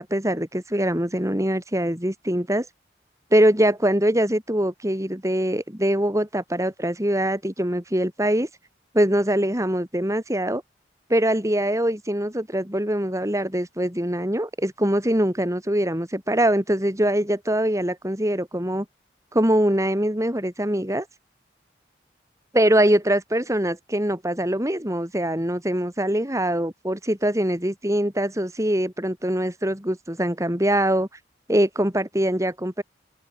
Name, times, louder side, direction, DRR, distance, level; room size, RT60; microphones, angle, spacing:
voice 1, 0.0-2.7 3.3-8.5 8.9-10.6 11.1-18.9 19.3-21.1 22.5-31.1 31.5-32.8, right 1 dB, 15° right, 4.0 m, -23 dB
head